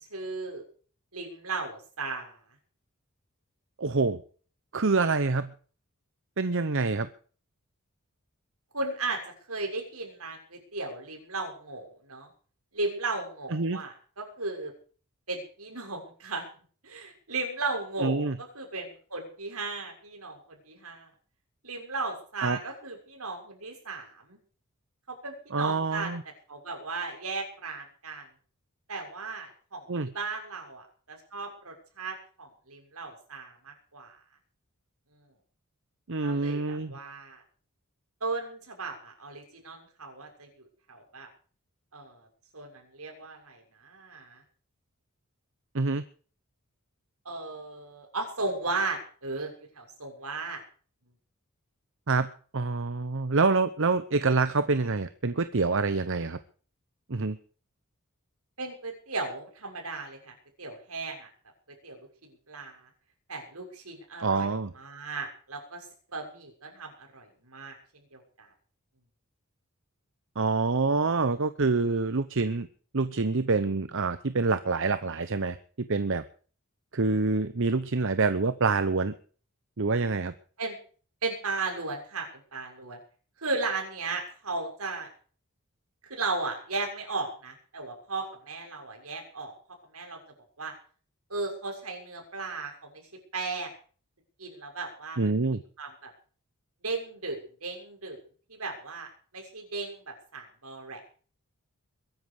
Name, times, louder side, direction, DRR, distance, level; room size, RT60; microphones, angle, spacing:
voice 1, 0.1-0.6 1.1-2.4 8.7-12.3 12.7-14.7 15.3-16.4 16.8-21.1 21.6-24.4 25.1-26.1 26.5-28.2 28.9-29.8 30.1-34.2 35.1-35.2 36.2-37.4 38.2-41.3 41.9-42.3 42.5-44.4 47.2-50.6 58.6-61.3 61.8-62.1 62.5-62.9 63.3-64.5 64.8-67.7 68.1-68.5 80.6-80.8 81.2-83.0 83.4-85.1 86.0-89.5 89.9-90.2 90.6-90.7 91.3-93.0 93.3-93.7 94.4-95.2 95.8-96.1 96.8-98.2 98.5-99.1 99.3-101.0, right 3 dB, 80° right, 2 dB, 6.6 m, -36 dB
voice 2, 3.8-4.2 4.7-5.5 6.4-7.1 13.5-13.8 18.0-18.4 22.4-22.6 25.5-26.2 29.9-30.1 36.1-37.0 45.7-46.0 52.1-56.4 57.1-57.4 64.2-64.7 70.4-72.7 72.9-76.2 76.9-79.1 79.8-80.3 95.2-95.6, right 3 dB, 60° right, 12 dB, 0.9 m, -26 dB
22.5 x 11.0 x 4.9 m, 0.42 s
head